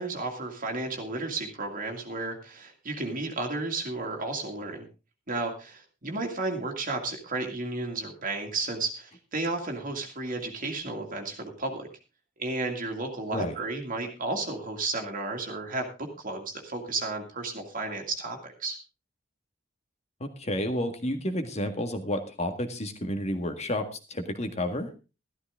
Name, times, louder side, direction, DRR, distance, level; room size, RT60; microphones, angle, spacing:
voice 1, 0.0-4.9 5.3-11.9 12.4-15.9 16.2-18.8, right 3 dB, 45° right, 2 dB, 2.1 m, -33 dB
voice 2, 20.2-24.9, left 1 dB, 35° left, 7 dB, 1.8 m, -31 dB
13.5 x 13.0 x 3.7 m, 0.31 s
head